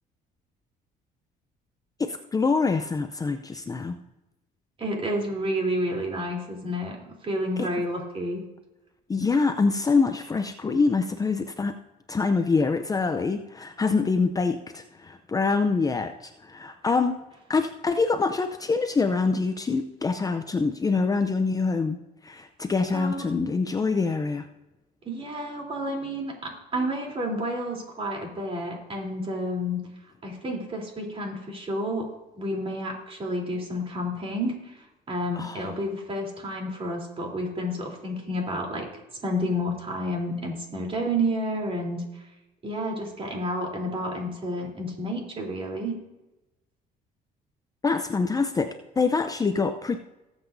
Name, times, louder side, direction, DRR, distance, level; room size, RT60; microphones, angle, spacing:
voice 1, 2.0-4.0 7.6-7.7 9.1-11.7 12.1-17.2 17.5-24.5 35.3-35.7 47.8-50.0, left 4 dB, 20° left, 7 dB, 0.6 m, -25 dB
voice 2, 4.8-8.5 22.9-23.3 25.1-29.8 30.2-32.1 32.4-38.9 39.2-42.0 42.6-45.9, equal, 35° right, 0 dB, 3.5 m, -30 dB
19.0 x 8.1 x 2.7 m, 1.0 s
cardioid pair, 110°, 17 cm